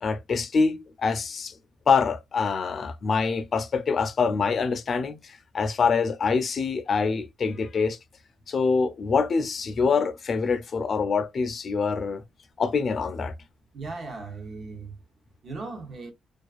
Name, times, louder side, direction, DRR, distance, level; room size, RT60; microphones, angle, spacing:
voice 1, 0.0-1.6 1.9-8.0 8.5-12.2 12.6-13.3, left 5 dB, 45° left, 0.3 m, -25 dB
voice 2, 13.7-15.0 15.4-16.1, right 3 dB, 50° right, 0.7 m, -37 dB
2.3 x 2.3 x 2.3 m
cardioid pair, 90°, 0 cm